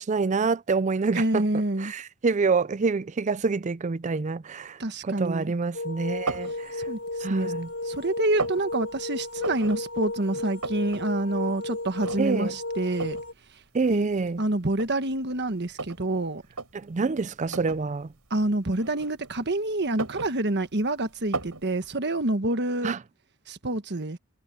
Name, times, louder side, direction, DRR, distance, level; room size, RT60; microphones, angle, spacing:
voice 1, 0.0-1.5 1.8-6.9 7.2-7.7 12.2-12.5 13.7-14.4 16.7-18.1 22.8-23.0, right 4 dB, 35° right, 0.4 m, -27 dB
voice 2, 1.1-1.9 4.8-5.5 6.8-7.5 7.8-13.2 13.9-14.1 14.4-16.4 18.3-22.9 23.5-24.2, right 2 dB, 50° right, 1.5 m, -27 dB
sound 1, 5.7-13.3, left 2 dB, 70° left, 2.9 m, -34 dB
sound 2, 6.3-6.6 7.1-7.8 8.0-8.6 9.4-9.8 10.1-10.2 10.4-11.0 11.4-11.5 12.0-12.5 13.0-13.3 14.1-14.2 14.7-16.1 16.5-16.7 17.5-17.8 18.8-19.5 19.8-20.8 21.3-21.6, right 3 dB, 90° right, 4.7 m, -34 dB
head